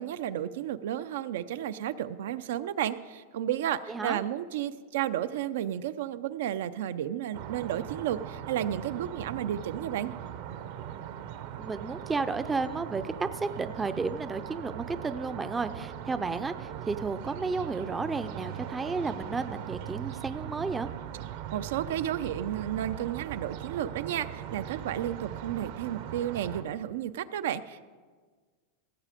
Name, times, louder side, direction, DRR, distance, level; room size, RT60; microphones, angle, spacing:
voice 1, 0.0-10.1 21.5-27.8, right 11 dB, 75° right, 13 dB, 0.5 m, -32 dB
voice 2, 3.9-4.2 11.6-20.9, right 4 dB, 10° right, 11 dB, 0.4 m, -32 dB
sound 1, 7.3-26.6, right 10 dB, 60° right, 0.8 m, -40 dB
17.0 x 7.5 x 5.1 m, 1.5 s
supercardioid pair, 150°, 0 cm